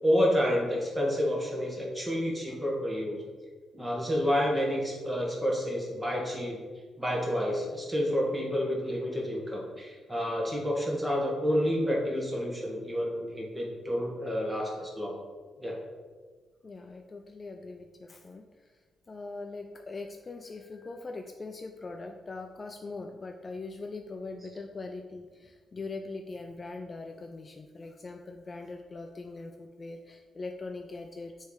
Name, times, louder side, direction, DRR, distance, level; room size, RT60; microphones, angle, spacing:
voice 1, 0.0-3.2 3.7-6.6 7.0-15.1 15.6-15.8, equal, 15° right, -2 dB, 1.6 m, -29 dB
voice 2, 16.6-18.4 19.1-31.4, left 3 dB, 30° left, 4 dB, 0.4 m, -41 dB
6.4 x 3.3 x 4.8 m, 1.4 s
cardioid pair, 110°, 0 cm